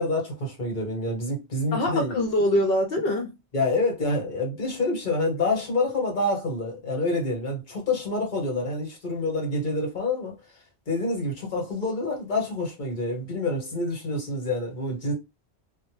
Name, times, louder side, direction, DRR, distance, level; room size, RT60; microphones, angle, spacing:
voice 1, 0.0-2.2 3.5-10.4 10.9-15.1, left 2 dB, 50° left, 1.1 m, -27 dB
voice 2, 1.7-3.4, left 1 dB, 65° left, 0.8 m, -24 dB
2.1 x 2.0 x 3.0 m
omnidirectional pair, 1.1 m